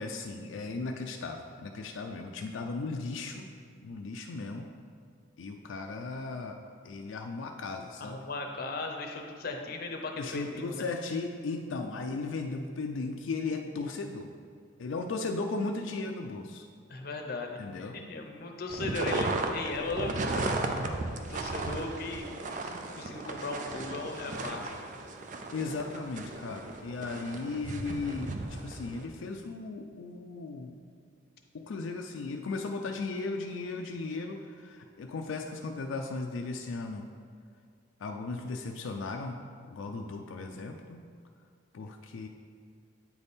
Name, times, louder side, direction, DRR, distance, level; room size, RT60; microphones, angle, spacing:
voice 1, 0.0-3.5 3.8-4.7 5.4-6.6 6.8-8.2 10.2-14.3 14.8-16.7 17.6-18.0 25.5-30.8 31.5-37.1 38.0-39.4 39.7-41.0 41.7-42.3, left 3 dB, 85° left, 3 dB, 0.4 m, -36 dB
voice 2, 8.0-10.9 16.9-20.9 21.1-22.3 22.6-24.7, left 2 dB, 50° left, 3 dB, 0.7 m, -37 dB
sound 1, 18.7-29.0, right 2 dB, 40° right, 0.4 m, -35 dB
8.6 x 4.1 x 3.5 m, 2.2 s
head